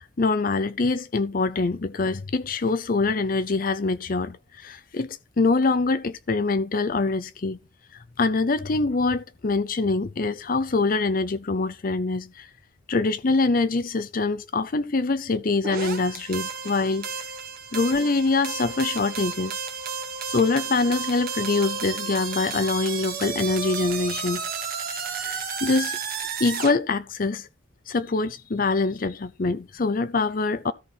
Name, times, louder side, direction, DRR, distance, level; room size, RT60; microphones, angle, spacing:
voice 1, 0.0-7.6 7.9-12.5 12.9-17.1 17.7-19.6 20.3-24.4 24.9-26.0 26.4-27.5 27.9-30.7, left 3 dB, 45° left, 0.6 m, -24 dB
sound 1, 15.6-26.7, right 6 dB, 50° right, 1.6 m, -32 dB
13.5 x 4.7 x 5.6 m
head